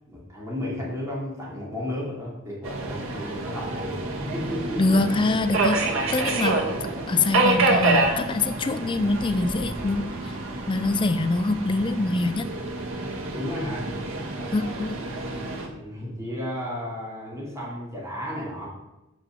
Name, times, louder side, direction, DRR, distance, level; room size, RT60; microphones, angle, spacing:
voice 1, 0.1-5.0 13.3-13.9 15.7-18.7, left 1 dB, 15° right, -6 dB, 2.8 m, -33 dB
Subway metro underground, 2.6-15.7, right 2 dB, 85° right, 1.5 m, -28 dB
voice 2, 4.8-6.6 7.1-10.4 10.7-12.5 14.5-15.0, left 2 dB, 25° left, 9 dB, 0.4 m, -24 dB
6.1 x 5.1 x 6.8 m, 0.98 s
head